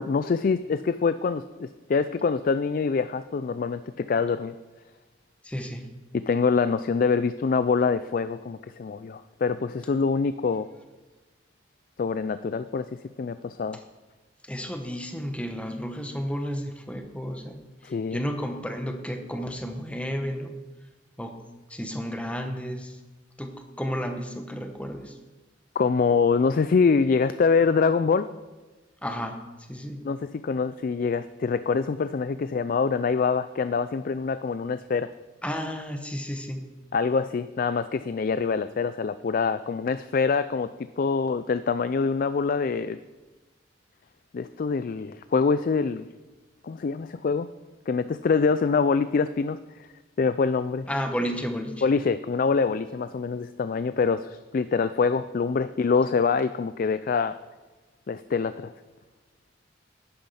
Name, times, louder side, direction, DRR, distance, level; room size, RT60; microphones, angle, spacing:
voice 1, 0.0-4.5 6.1-10.7 12.0-12.9 13.2-13.8 17.8-18.2 25.8-28.3 30.0-35.1 36.9-43.0 44.3-46.1 46.6-47.5 47.9-49.6 50.2-50.9 51.8-57.4 58.1-58.7, left 5 dB, 45° left, 13 dB, 0.3 m, -25 dB
voice 2, 5.4-5.9 14.4-20.5 21.2-21.4 21.7-23.0 23.4-25.2 29.0-29.4 29.7-30.0 35.4-36.6 50.9-51.8, equal, 5° left, 5 dB, 1.0 m, -32 dB
10.0 x 9.7 x 5.6 m, 1.2 s
head